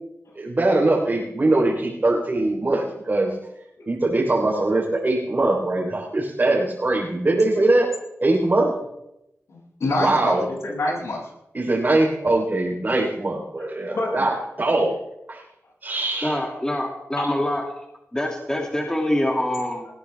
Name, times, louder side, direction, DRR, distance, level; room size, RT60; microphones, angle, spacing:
voice 1, 0.4-3.3 3.9-7.9 8.2-8.7 10.0-10.5 11.5-14.9 15.3-15.4 15.8-16.4, right 2 dB, 40° right, -4 dB, 3.8 m, -21 dB
voice 2, 9.5-11.2 13.9-14.2, left 2 dB, 75° left, -3 dB, 7.1 m, -26 dB
voice 3, 16.2-17.6 18.1-19.9, left 1 dB, 15° left, 1 dB, 2.5 m, -25 dB
20.0 x 15.0 x 3.5 m, 0.85 s
cardioid pair, 60°, 5 cm